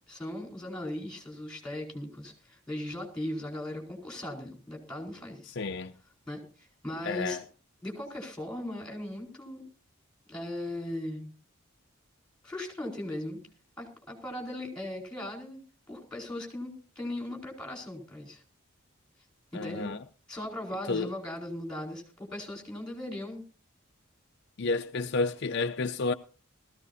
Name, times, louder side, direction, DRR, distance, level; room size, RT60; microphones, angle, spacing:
voice 1, 0.1-5.5 6.3-6.4 6.8-7.4 7.8-9.6 10.3-11.3 12.4-13.4 13.8-15.6 15.9-18.4 19.5-19.9 20.3-23.4, left 1 dB, 5° left, 4.6 m, -38 dB
voice 2, 5.5-5.9 7.0-7.4 19.5-20.0 20.9-21.1 24.6-26.1, left 3 dB, 55° left, 0.6 m, -30 dB
20.0 x 15.0 x 2.7 m
head